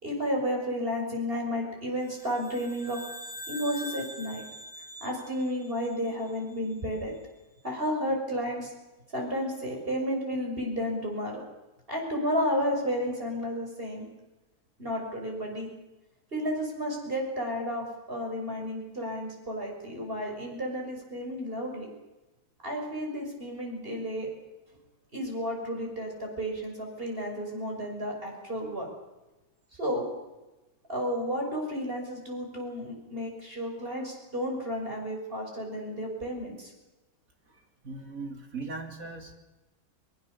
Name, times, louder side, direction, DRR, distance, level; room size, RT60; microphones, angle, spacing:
voice 1, 0.0-3.0 3.5-4.4 5.0-7.1 7.6-8.7 9.1-11.4 11.9-14.1 14.8-15.7 16.3-21.9 22.6-24.3 25.1-28.9 29.8-30.1 30.9-36.7, equal, 35° right, 1 dB, 6.5 m, -32 dB
sound 1, 2.1-6.6, equal, 5° left, 5.8 m, -44 dB
voice 2, 37.5-39.3, right 3 dB, 55° right, 3 dB, 3.3 m, -39 dB
23.0 x 22.5 x 7.0 m, 1.1 s
omnidirectional pair, 1.7 m